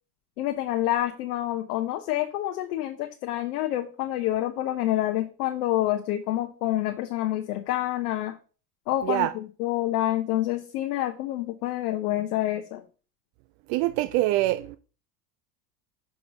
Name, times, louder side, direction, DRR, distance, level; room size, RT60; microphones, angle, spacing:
voice 1, 0.4-8.4 8.9-12.8, left 14 dB, 65° left, 0.9 m, -27 dB
voice 2, 13.7-14.8, right 16 dB, 40° right, 0.4 m, -24 dB
6.1 x 3.7 x 5.0 m
hypercardioid pair, 80°, 50 cm